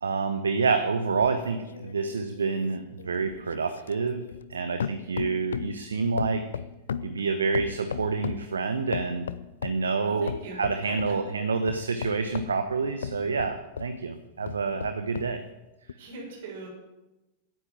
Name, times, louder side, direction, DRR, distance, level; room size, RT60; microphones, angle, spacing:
voice 1, 0.0-4.2 4.5-6.4 7.0-9.3 9.6-15.4, right 4 dB, 70° right, 9 dB, 1.1 m, -28 dB
sound 1, 1.2-4.5 4.8-5.8 6.2-8.5 8.9-9.9 10.3-11.2 11.7-14.0 14.4-15.4 15.9-16.0, left 7 dB, 65° left, 0.6 m, -36 dB
voice 2, 10.0-10.6 10.8-11.1 16.0-16.7, right 3 dB, 55° right, 0 dB, 6.7 m, -41 dB
17.0 x 10.0 x 7.6 m, 1.0 s
figure-of-eight pair, 90°, 0 cm